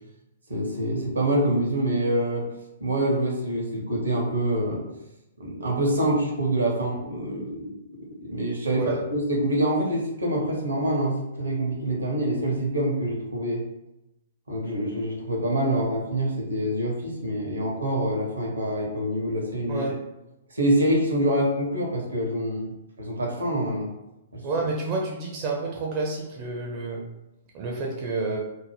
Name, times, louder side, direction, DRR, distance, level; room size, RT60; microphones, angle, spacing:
voice 1, 0.5-2.4 2.8-4.8 5.4-13.6 14.5-19.8 20.5-23.9 24.3-24.4, right 1 dB, 80° right, -1 dB, 0.9 m, -26 dB
voice 2, 24.4-27.0 27.5-28.4, right 3 dB, 35° right, -2 dB, 0.5 m, -29 dB
2.6 x 2.0 x 3.3 m, 0.91 s
figure-of-eight pair, 115°, 0 cm